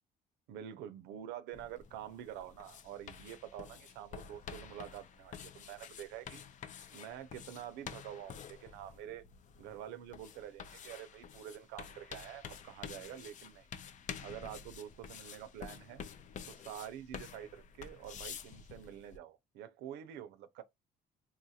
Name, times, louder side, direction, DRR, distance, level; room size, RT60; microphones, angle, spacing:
voice 1, 0.5-6.4 6.9-9.2 9.6-13.7 14.2-16.0 16.5-20.6, right 10 dB, 90° right, 0.6 m, -47 dB
sound 1, 1.5-19.2, left 7 dB, 50° left, 0.5 m, -49 dB
3.7 x 2.4 x 2.7 m
cardioid pair, 110°, 17 cm